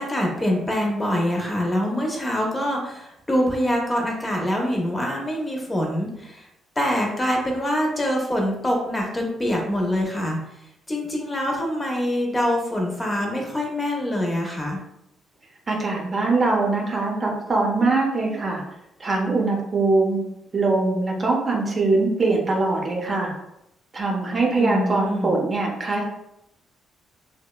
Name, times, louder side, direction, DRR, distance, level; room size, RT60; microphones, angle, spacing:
voice 1, 0.0-6.4 6.8-10.4 10.9-14.8 24.6-25.4, equal, 20° left, 0 dB, 0.6 m, -24 dB
voice 2, 15.7-18.6 19.0-20.2 20.5-23.3 23.9-26.1, right 3 dB, 35° right, -1 dB, 0.6 m, -22 dB
2.7 x 2.0 x 2.2 m, 0.83 s
cardioid pair, 90°, 0 cm